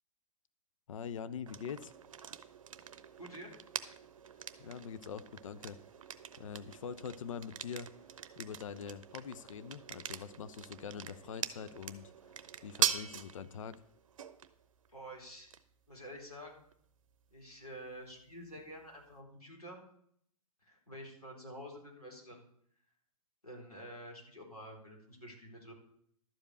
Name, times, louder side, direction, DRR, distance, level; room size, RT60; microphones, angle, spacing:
voice 1, 0.9-1.9 4.6-5.8 6.4-7.9 8.4-12.1 12.6-13.8, left 7 dB, 60° left, 15 dB, 0.7 m, -44 dB
sound 1, 1.5-19.2, right 8 dB, 60° right, 0.8 m, -43 dB
voice 2, 3.2-3.5 4.2-4.6 14.9-15.5 15.9-16.6 17.3-19.8 20.6-22.5 23.4-25.7, equal, 85° left, -2 dB, 4.1 m, -49 dB
12.0 x 5.1 x 8.1 m, 0.67 s
figure-of-eight pair, 105°, 19 cm